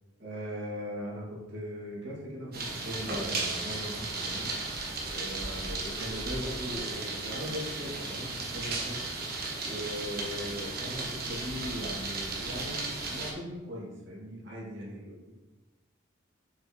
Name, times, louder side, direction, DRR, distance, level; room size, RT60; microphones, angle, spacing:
voice 1, 0.2-4.5 5.1-9.0 9.6-15.3, equal, 65° right, -5 dB, 2.2 m, -39 dB
sound 1, 2.5-13.3, right 3 dB, 50° right, 1.2 m, -35 dB
6.5 x 6.1 x 3.0 m, 1.2 s
head